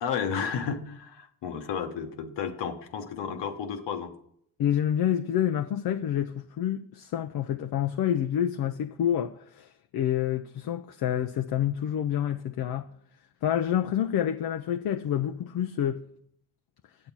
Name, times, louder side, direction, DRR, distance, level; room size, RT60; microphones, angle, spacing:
voice 1, 0.0-4.1, left 7 dB, 75° left, 1.1 m, -32 dB
voice 2, 4.6-12.9 13.4-16.0, left 10 dB, 60° left, 0.6 m, -28 dB
7.8 x 7.3 x 5.8 m
supercardioid pair, 65°, 43 cm